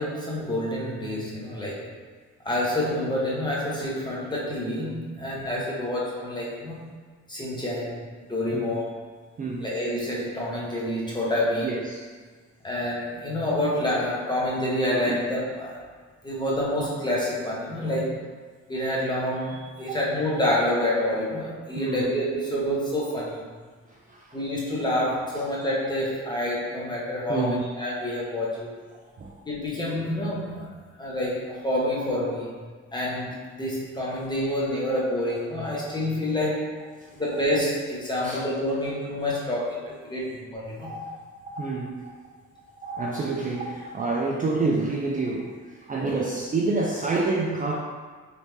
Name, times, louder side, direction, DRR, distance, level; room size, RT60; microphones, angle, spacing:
voice 1, 0.0-1.9 2.4-6.9 7.3-8.0 8.3-9.0 9.6-11.8 12.6-15.8 16.2-18.3 18.7-23.4 24.3-28.7 29.4-36.8 37.2-40.9, left 1 dB, 15° left, -5 dB, 1.0 m, -28 dB
voice 2, 11.6-12.0 14.9-15.2 17.8-17.9 19.9-20.0 21.7-22.1 23.9-24.4 27.3-27.6 29.2-29.3 38.2-38.4 40.8-41.2 41.5-42.1 42.8-47.8, right 3 dB, 25° right, -3 dB, 0.4 m, -28 dB
3.3 x 2.7 x 3.1 m, 1.5 s
cardioid pair, 90°, 30 cm